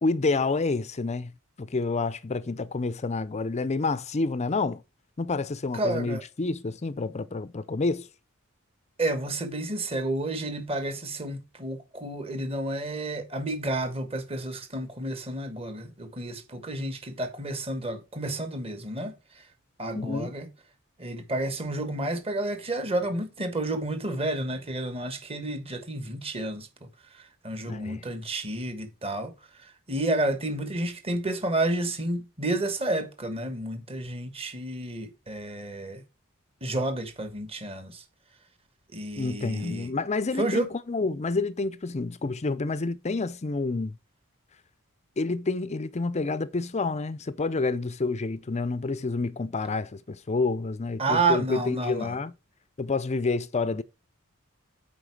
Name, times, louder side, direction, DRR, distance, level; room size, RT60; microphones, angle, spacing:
voice 1, 0.0-1.3 1.6-4.8 5.2-8.1 19.9-20.3 27.6-28.0 39.2-44.0 45.2-52.3 52.8-53.8, left 3 dB, 30° left, 0.5 m, -28 dB
voice 2, 5.7-6.2 9.0-19.4 19.8-20.5 21.0-26.7 27.1-29.3 29.6-36.0 36.6-38.0 38.9-39.9 40.4-40.7 51.0-52.2, right 2 dB, 25° right, 1.3 m, -30 dB
9.0 x 4.6 x 4.8 m
head